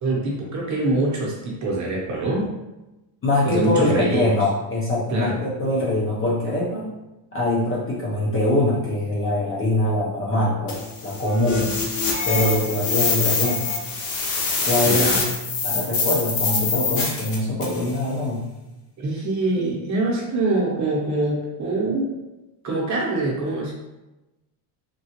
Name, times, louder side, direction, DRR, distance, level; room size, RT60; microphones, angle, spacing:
voice 1, 0.0-2.5 3.4-4.3 5.1-5.4 14.8-15.2 19.0-22.1 22.6-23.8, right 2 dB, 35° right, -3 dB, 0.9 m, -24 dB
voice 2, 3.2-6.9 7.3-11.8 12.2-13.6 14.6-15.3 15.6-18.4, left 1 dB, 30° left, -5 dB, 0.6 m, -23 dB
sound 1, 10.7-17.9, left 4 dB, 80° left, 0.9 m, -24 dB
3.7 x 2.3 x 2.9 m, 1.0 s
cardioid pair, 150°, 48 cm